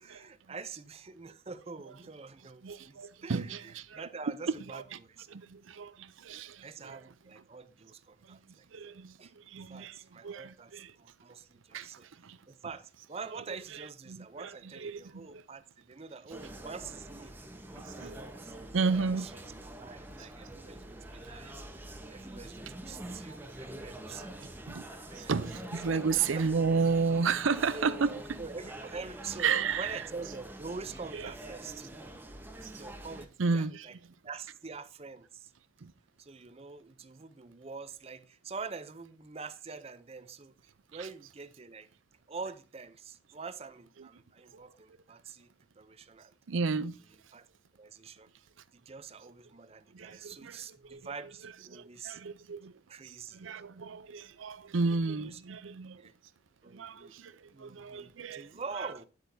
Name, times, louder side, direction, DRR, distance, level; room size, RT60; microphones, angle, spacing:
voice 1, 0.0-5.3 6.6-8.7 9.2-9.3 9.7-12.1 12.5-17.4 17.8-19.4 19.8-24.6 24.9-25.3 25.8-26.0 26.4-26.5 27.2-27.4 27.7-29.5 29.8-31.9 32.5-33.9 34.2-35.5 36.2-40.5 40.9-41.9 42.3-45.5 45.8-46.3 47.3-47.4 47.8-48.3 48.7-52.2 52.9-53.4 55.2-55.4 56.0-56.1 56.6-57.2 57.5-59.1, right 4 dB, 30° right, 0.6 m, -45 dB
voice 2, 2.6-5.0 5.3-7.0 8.2-8.4 8.7-10.9 11.7-12.4 13.3-13.4 13.7-15.4 17.7-18.2 18.7-19.3 20.2-20.3 23.3-23.4 24.7-24.9 25.1-28.4 29.4-30.0 31.1-31.3 32.6-32.7 33.4-34.0 35.8-35.9 40.9-41.1 44.0-44.1 46.5-47.0 49.9-51.1 51.4-52.7 53.0-56.1 56.7-58.9, right 5 dB, 80° right, 0.6 m, -33 dB
sound 1, 16.3-33.3, right 1 dB, 10° right, 1.0 m, -45 dB
9.6 x 8.2 x 2.7 m
head